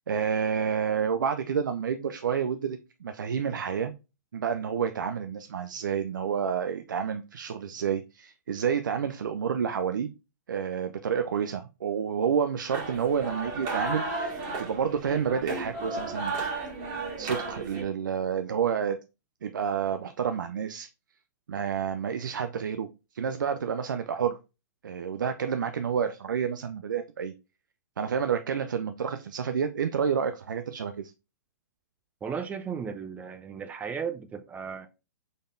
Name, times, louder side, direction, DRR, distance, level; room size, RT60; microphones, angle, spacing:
voice 1, 0.1-3.9 4.3-10.1 10.5-16.4 17.2-19.0 19.4-20.9 21.5-22.9 23.1-24.4 24.8-27.3 28.0-31.1, right 7 dB, 85° right, 0.4 m, -29 dB
sound 1, 12.7-17.8, right 3 dB, 40° right, 1.6 m, -34 dB
voice 2, 32.2-34.9, right 6 dB, 15° right, 0.4 m, -35 dB
4.0 x 3.4 x 2.5 m
hypercardioid pair, 125°, 10 cm